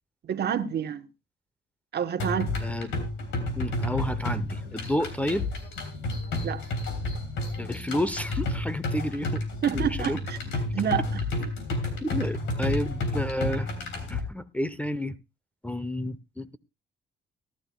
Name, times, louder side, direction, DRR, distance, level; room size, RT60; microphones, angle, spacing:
voice 1, 0.2-1.1 1.9-2.5 6.4-6.6 9.6-10.4 10.7-11.2, right 8 dB, 55° right, 1.1 m, -28 dB
sound 1, 2.2-14.2, left 2 dB, 80° left, 3.6 m, -31 dB
voice 2, 3.6-5.5 7.6-9.4 9.7-10.2 12.0-13.7 14.1-15.2 15.6-16.6, left 1 dB, 5° left, 0.8 m, -30 dB
18.0 x 12.0 x 2.3 m
cardioid pair, 90°, 20 cm